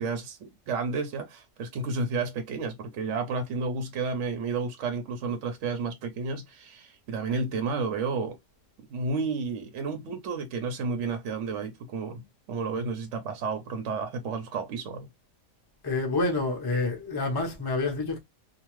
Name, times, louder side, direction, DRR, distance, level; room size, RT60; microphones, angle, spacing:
voice 1, 0.0-8.4 8.9-15.1, right 4 dB, 60° right, 0.8 m, -31 dB
voice 2, 15.8-18.2, left 3 dB, 30° left, 0.4 m, -28 dB
2.8 x 2.1 x 3.0 m
omnidirectional pair, 1.8 m